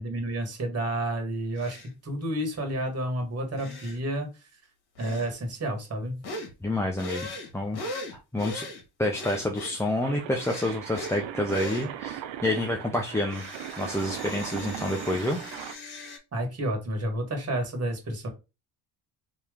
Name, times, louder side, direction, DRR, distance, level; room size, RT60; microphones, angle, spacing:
voice 1, 0.0-4.3 5.0-6.2 16.3-18.3, right 1 dB, 30° right, 4 dB, 1.6 m, -30 dB
sound 1, 1.6-1.9 3.6-4.0 5.0-5.3 6.2-6.5 7.0-8.8 9.1-9.8 10.4-11.2 11.5-11.9 13.3-16.2, left 1 dB, 55° left, 1.6 m, -39 dB
voice 2, 6.6-7.3 7.5-7.8 8.1-8.7 9.0-13.4 13.8-15.4, left 1 dB, 5° left, 0 dB, 0.5 m, -28 dB
sound 2, 10.0-15.7, right 11 dB, 70° right, 0.6 m, -38 dB
3.1 x 2.9 x 3.5 m, 0.28 s
supercardioid pair, 75°, 46 cm